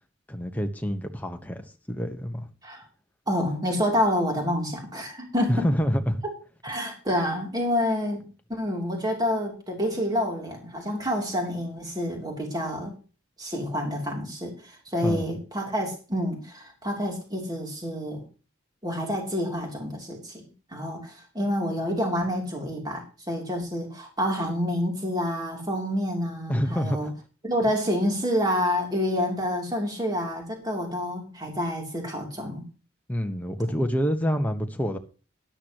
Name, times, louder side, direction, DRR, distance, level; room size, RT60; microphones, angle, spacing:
voice 1, 0.3-2.5 5.5-6.2 15.0-15.3 26.5-27.1 33.1-35.0, equal, 5° left, 1.2 m, -27 dB
voice 2, 3.3-5.7 6.6-12.9 13.4-18.2 18.8-20.4 20.7-27.1 27.4-32.7, equal, 20° right, 3.2 m, -28 dB
13.0 x 11.5 x 3.1 m
head